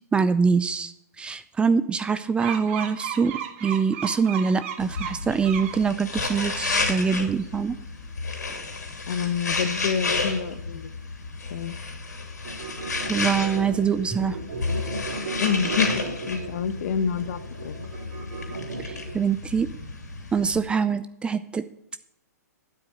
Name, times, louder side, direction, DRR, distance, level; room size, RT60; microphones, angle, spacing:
voice 1, 0.1-7.8 13.1-14.4 18.8-19.7 20.3-21.6, right 5 dB, 10° right, 13 dB, 0.5 m, -24 dB
sound 1, 2.4-5.8 6.2-7.5, right 9 dB, 45° right, 1.6 m, -35 dB
sound 2, 4.8-20.6, left 3 dB, 75° left, 2.8 m, -32 dB
voice 2, 9.1-10.9 11.5-11.7 15.4-17.7, left 7 dB, 55° left, 11 dB, 1.2 m, -27 dB
sound 3, 12.4-19.2, right 3 dB, 70° right, 4.3 m, -35 dB
9.2 x 8.0 x 9.2 m, 0.77 s
figure-of-eight pair, 120°, 9 cm